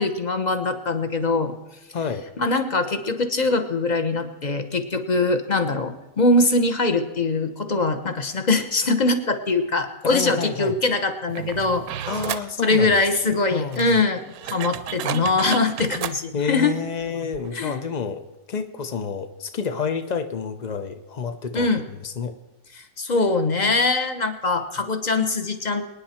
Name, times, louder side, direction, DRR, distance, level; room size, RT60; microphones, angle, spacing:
voice 1, 0.0-1.5 2.4-11.8 12.6-16.7 17.5-17.8 21.5-21.8 23.0-25.8, left 3 dB, 30° left, 8 dB, 0.9 m, -22 dB
voice 2, 1.9-2.3 10.0-10.8 12.1-13.0 13.5-14.0 16.3-21.7 22.0-22.4, left 6 dB, 90° left, 8 dB, 0.3 m, -29 dB
sound 1, 11.3-12.5 13.3-13.4 13.7-16.2 17.0-17.1 17.3-17.5, right 10 dB, 65° right, 1.0 m, -32 dB
25.0 x 9.8 x 4.4 m, 0.99 s
omnidirectional pair, 1.9 m